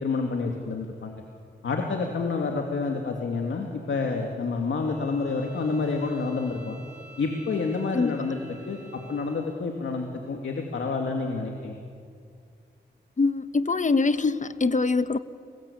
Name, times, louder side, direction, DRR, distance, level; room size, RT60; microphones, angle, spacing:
voice 1, 0.0-1.1 1.6-6.8 7.2-8.4 8.7-8.8 9.1-11.8, left 4 dB, 85° left, 2 dB, 2.5 m, -28 dB
Bowed string instrument, 4.7-9.6, right 2 dB, 45° right, 5.1 m, -50 dB
voice 2, 13.2-15.2, left 3 dB, 40° left, 12 dB, 1.2 m, -24 dB
30.0 x 21.5 x 8.6 m, 2.3 s
cardioid pair, 60°, 19 cm